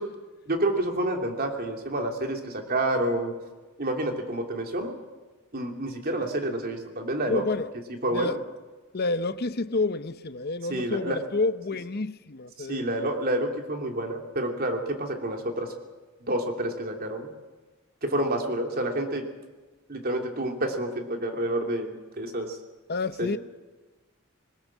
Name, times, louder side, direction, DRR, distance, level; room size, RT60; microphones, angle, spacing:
voice 1, 0.5-3.3 3.8-5.0 5.5-7.4 8.0-8.3 10.7-11.2 12.6-15.7 16.3-17.3 18.0-19.2 19.9-22.6 23.2-23.4, right 1 dB, 45° right, 3.0 m, -29 dB
voice 2, 7.3-7.7 8.1-8.4 8.9-12.9 22.9-23.4, left 3 dB, 50° left, 0.8 m, -29 dB
21.0 x 19.5 x 7.4 m
head